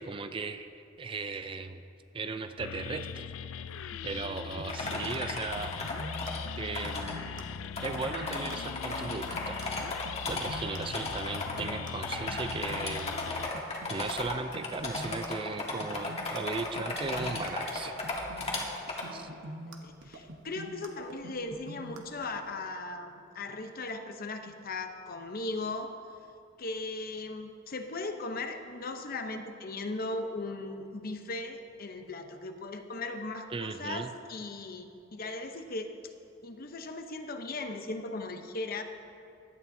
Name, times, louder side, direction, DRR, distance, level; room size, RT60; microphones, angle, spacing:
voice 1, 0.0-1.8 2.1-3.2 4.0-5.7 6.6-7.4 7.8-9.6 10.3-13.1 13.5-17.9 19.1-19.3 33.5-34.1, right 4 dB, 25° right, 9 dB, 0.4 m, -37 dB
sound 1, 2.6-13.5, left 7 dB, 75° left, 0.4 m, -40 dB
voice 2, 3.9-4.2 19.0-19.3 19.7-25.9 26.6-36.0 36.4-38.8, left 2 dB, 50° left, 6 dB, 0.8 m, -38 dB
sound 2, 4.6-22.5, right 1 dB, 80° right, 1.0 m, -45 dB
sound 3, 4.7-6.4 6.8-7.2 7.5-7.6 7.8-11.7 12.0-19.0, left 2 dB, 35° left, 1.5 m, -35 dB
16.5 x 11.5 x 2.7 m, 2.5 s
head